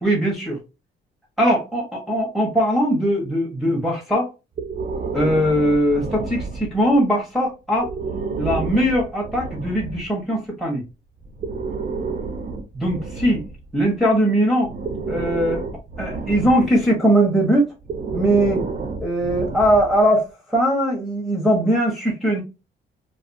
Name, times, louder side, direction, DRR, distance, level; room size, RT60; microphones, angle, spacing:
voice 1, 0.0-0.6 1.4-4.3 5.1-7.9 8.4-10.8 12.7-13.4 13.7-14.7 15.1-17.7 18.1-18.6 19.0-22.4, equal, ahead, -3 dB, 0.9 m, -20 dB
Breathing, 4.6-7.0 7.7-10.1 11.2-14.0 14.6-16.9 17.8-20.1, right 4 dB, 40° right, 0.5 m, -30 dB
2.4 x 2.4 x 2.5 m, 0.28 s
cardioid pair, 90°, 20 cm